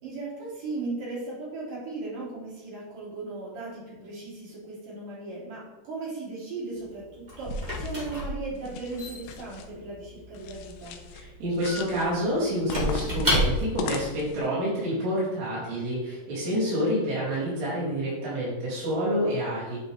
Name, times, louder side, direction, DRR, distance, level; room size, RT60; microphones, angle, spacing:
voice 1, 0.0-10.9, right 3 dB, 45° right, -8 dB, 4.3 m, -37 dB
Squeak / Wood, 6.8-13.9, equal, 60° right, 0.4 m, -31 dB
sound 1, 7.4-8.1 8.5-9.7 10.3-11.2 11.5-12.1 12.7-14.5, left 6 dB, 80° left, 2.5 m, -39 dB
voice 2, 11.1-19.8, equal, 85° right, -11 dB, 5.5 m, -28 dB
11.0 x 5.3 x 3.7 m, 1.1 s
omnidirectional pair, 4.7 m